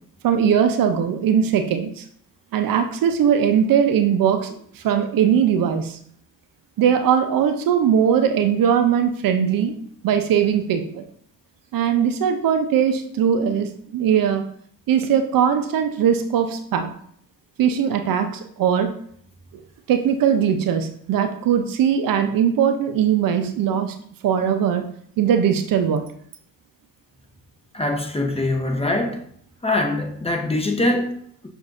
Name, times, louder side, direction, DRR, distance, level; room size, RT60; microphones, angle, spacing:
voice 1, 0.2-2.0 2.5-6.0 6.8-9.8 10.0-11.0 11.7-14.5 14.9-16.9 17.6-18.9 19.9-23.9 24.2-26.1, right 8 dB, 60° right, 7 dB, 0.5 m, -20 dB
voice 2, 27.7-29.3 29.6-31.5, left 2 dB, 15° left, 3 dB, 0.8 m, -23 dB
6.2 x 2.6 x 2.4 m, 0.62 s
supercardioid pair, 55°, 38 cm